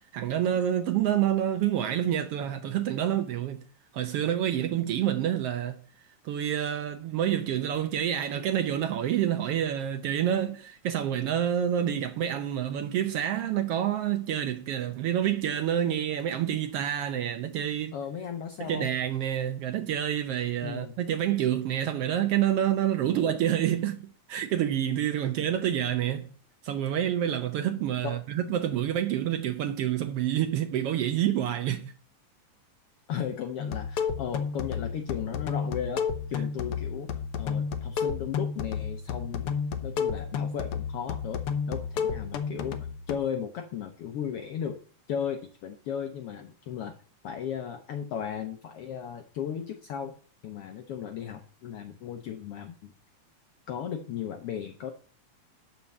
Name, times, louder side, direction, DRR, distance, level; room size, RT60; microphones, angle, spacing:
voice 1, 0.0-3.6 3.9-5.8 6.2-17.9 18.6-26.3 26.6-31.9, right 10 dB, 85° right, 1.3 m, -28 dB
voice 2, 17.9-18.9 20.6-21.0 23.1-23.4 25.4-25.5 28.0-28.2 33.1-37.1 37.4-39.5 39.8-42.8 43.1-44.8 45.1-47.0 47.2-50.2 50.4-52.9 53.7-54.9, left 8 dB, 85° left, 1.2 m, -35 dB
sound 1, 33.6-43.1, left 6 dB, 65° left, 1.5 m, -31 dB
12.0 x 4.3 x 7.1 m
omnidirectional pair, 3.6 m